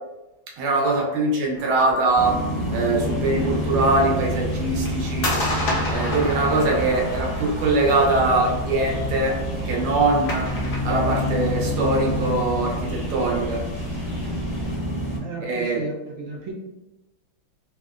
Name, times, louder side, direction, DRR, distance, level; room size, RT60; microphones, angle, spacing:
voice 1, 0.6-2.4 2.7-5.3 5.9-9.4 9.7-10.5 10.8-13.6 15.4-15.8, right 2 dB, 90° right, -1 dB, 1.6 m, -22 dB
sound 1, 1.5-10.8, left 1 dB, 65° left, 0.7 m, -33 dB
sound 2, 2.1-15.2, equal, 15° left, 1.1 m, -28 dB
sound 3, 3.0-14.8, right 1 dB, 30° right, 0.9 m, -38 dB
voice 2, 15.2-16.5, right 4 dB, 75° right, -1 dB, 1.4 m, -33 dB
3.6 x 2.7 x 2.4 m, 0.99 s
omnidirectional pair, 2.3 m